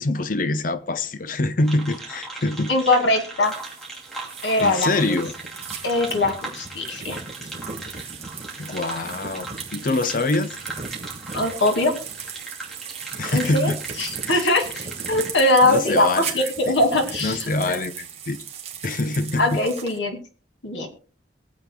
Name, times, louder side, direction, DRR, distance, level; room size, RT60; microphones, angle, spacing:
voice 1, 0.0-2.7 4.6-5.3 8.6-9.5 9.7-10.6 13.2-13.8 14.3-14.5 15.6-16.5 17.2-18.4 18.8-19.6, left 2 dB, 45° left, 0.7 m, -25 dB
sound 1, 1.6-15.4, right 2 dB, ahead, 2.6 m, -38 dB
voice 2, 2.7-3.5 4.4-5.2 5.8-7.2 11.3-11.9 13.2-13.7 14.0-17.4 17.7-17.8 19.4-20.2 20.6-20.9, left 2 dB, 80° left, 2.3 m, -21 dB
sound 2, 3.4-20.0, right 6 dB, 35° right, 1.7 m, -37 dB
22.0 x 7.8 x 2.3 m
head